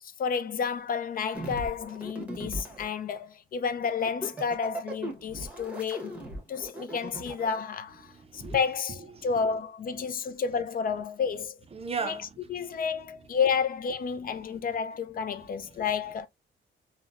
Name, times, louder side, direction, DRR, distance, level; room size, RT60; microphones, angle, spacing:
voice 1, 0.0-6.2 6.5-11.6 12.0-12.2 12.5-16.3, left 6 dB, 45° left, 0.4 m, -31 dB
sound 1, 1.3-2.9 3.8-7.6 8.4-8.6, right 1 dB, 5° right, 1.1 m, -38 dB
voice 2, 8.0-8.6 9.1-9.3 10.0-10.1 11.7-12.8 14.5-14.6 15.3-15.8, right 5 dB, 30° right, 0.5 m, -38 dB
3.9 x 2.1 x 2.4 m
cardioid pair, 90°, 20 cm